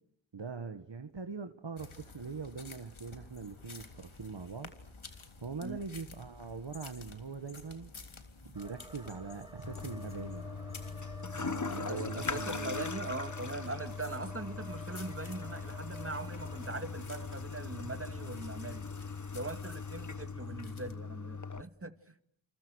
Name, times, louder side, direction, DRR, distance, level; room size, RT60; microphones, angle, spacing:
voice 1, 0.3-4.7 5.1-7.9 8.4-10.4 11.4-12.9, right 5 dB, 65° right, 1.8 m, -42 dB
sound 1, 1.8-20.9, left 3 dB, 90° left, 3.3 m, -52 dB
sound 2, 8.6-16.8, right 1 dB, 10° right, 2.4 m, -51 dB
Toilet flush, 9.6-21.6, left 4 dB, 40° left, 1.3 m, -40 dB
voice 2, 11.9-18.9 19.3-21.9, right 3 dB, 30° right, 2.3 m, -41 dB
29.5 x 28.5 x 6.5 m
wide cardioid pair, 55°, 47 cm